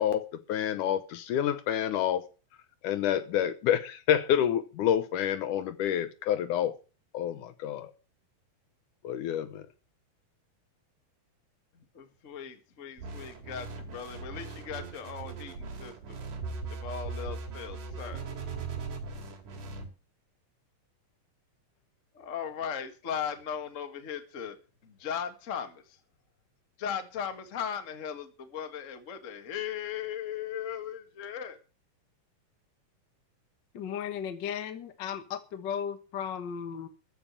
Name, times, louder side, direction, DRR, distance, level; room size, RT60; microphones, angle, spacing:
voice 1, 0.0-2.3 2.8-6.8 7.1-7.9 9.0-9.7, left 10 dB, 70° left, 2.2 m, -28 dB
voice 2, 11.7-16.2 16.7-18.2 22.1-24.6 24.8-26.0 26.8-31.6, left 8 dB, 35° left, 1.3 m, -38 dB
sound 1, 13.0-19.9, right 4 dB, 65° right, 3.9 m, -39 dB
voice 3, 33.7-36.9, left 8 dB, 55° left, 1.3 m, -35 dB
14.5 x 6.2 x 8.5 m
omnidirectional pair, 4.0 m